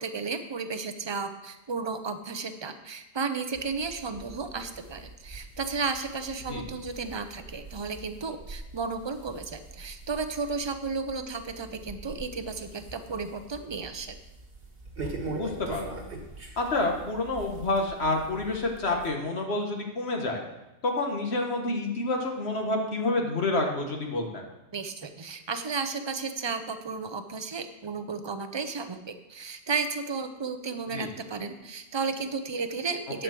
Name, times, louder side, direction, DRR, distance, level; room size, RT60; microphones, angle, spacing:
voice 1, 0.0-14.2 24.7-33.2, right 4 dB, 30° right, 8 dB, 0.7 m, -33 dB
sound 1, 3.5-19.1, right 2 dB, 60° right, 1.6 m, -43 dB
voice 2, 15.3-16.0 16.6-20.4 20.8-24.4 30.9-31.1 33.1-33.2, left 2 dB, 70° left, 2 dB, 1.6 m, -28 dB
10.5 x 5.0 x 7.5 m, 0.99 s
omnidirectional pair, 1.1 m